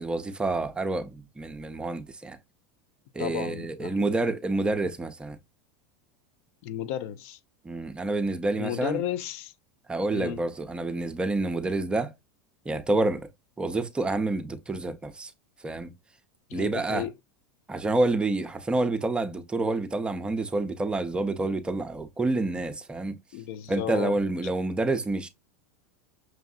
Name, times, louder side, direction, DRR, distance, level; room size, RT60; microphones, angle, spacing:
voice 1, 0.0-2.4 3.1-5.4 7.6-9.0 9.9-12.1 12.7-13.3 13.6-15.3 15.6-15.9 16.5-17.1 17.7-23.2 23.7-25.3, right 2 dB, 10° right, 0.5 m, -28 dB
voice 2, 3.2-4.1 6.6-7.4 8.6-9.5 10.1-10.4 16.5-17.1 23.3-24.1, left 11 dB, 65° left, 0.4 m, -33 dB
6.1 x 2.6 x 2.4 m
supercardioid pair, 120°, 8 cm